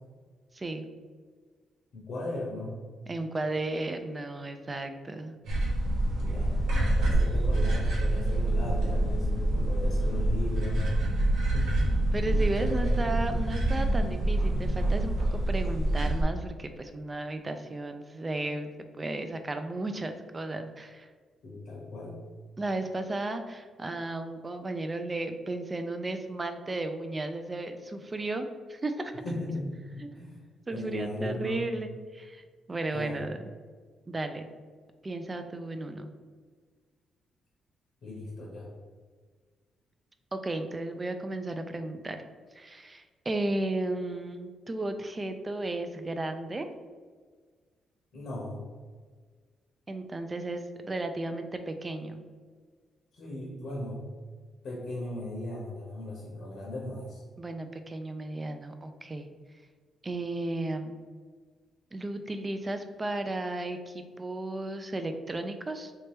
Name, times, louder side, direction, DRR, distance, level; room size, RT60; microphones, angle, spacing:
voice 1, 0.5-0.9 3.1-5.4 12.1-18.7 19.0-21.1 22.6-29.1 30.0-30.3 30.7-33.4 34.1-34.4 35.0-36.1 40.3-42.2 42.5-46.7 49.9-52.2 57.4-59.3 60.0-60.9 61.9-65.9, right 2 dB, 25° right, 7 dB, 0.4 m, -34 dB
voice 2, 1.9-2.8 6.2-6.6 7.0-10.9 11.4-11.9 12.6-12.9 21.4-22.2 29.2-30.4 30.7-31.7 32.9-33.2 38.0-38.7 48.1-48.6 53.1-54.1 54.6-57.2, left 1 dB, 70° left, -4 dB, 0.9 m, -37 dB
sound 1, 5.4-16.2, right 1 dB, 85° right, 0.9 m, -26 dB
3.3 x 2.8 x 3.3 m, 1.5 s
cardioid pair, 90°, 0 cm